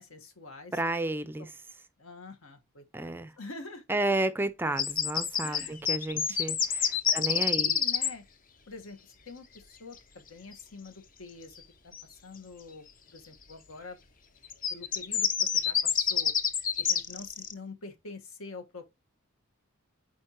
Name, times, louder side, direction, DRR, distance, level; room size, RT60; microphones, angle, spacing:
voice 1, 0.0-0.9 1.4-1.5 2.0-4.0 5.4-5.8 7.3-8.2 8.7-14.0 14.7-16.3 16.8-18.9, left 3 dB, 75° left, 1.5 m, -46 dB
voice 2, 0.7-1.5 2.9-3.3 3.9-7.7, right 2 dB, 10° right, 0.4 m, -32 dB
sound 1, 4.8-8.1 11.9-12.0 14.4-17.5, left 7 dB, 40° left, 0.7 m, -27 dB
8.9 x 4.5 x 3.0 m
head